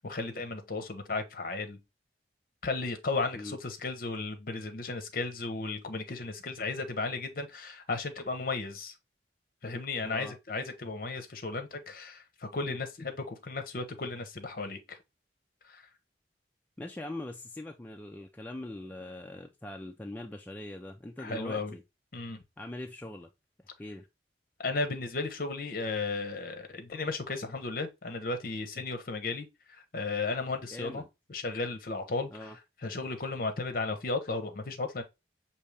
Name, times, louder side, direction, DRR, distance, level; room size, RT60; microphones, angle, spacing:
voice 1, 0.0-1.8 2.6-8.9 9.6-15.0 15.7-15.9 21.2-21.7 22.1-22.4 24.6-31.0 31.3-32.5 32.8-35.0, left 3 dB, 50° left, 0.8 m, -35 dB
voice 2, 16.8-21.8 22.6-23.3 23.8-24.0 30.7-31.1 32.3-32.6, left 1 dB, 10° left, 0.3 m, -42 dB
5.3 x 2.8 x 3.2 m
head